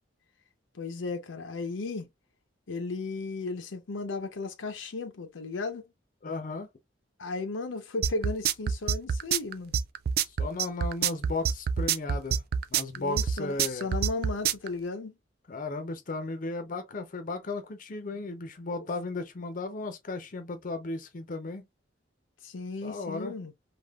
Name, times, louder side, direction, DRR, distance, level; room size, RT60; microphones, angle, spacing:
voice 1, 0.7-2.1 2.7-5.9 7.2-9.7 12.9-15.2 18.7-18.8 22.4-23.5, left 3 dB, 90° left, 0.6 m, -35 dB
voice 2, 6.2-6.7 10.3-12.4 12.7-13.9 15.5-21.6 22.8-23.3, left 3 dB, 45° left, 0.5 m, -35 dB
sound 1, 8.0-14.7, right 7 dB, 55° right, 0.3 m, -26 dB
3.4 x 2.3 x 2.2 m
head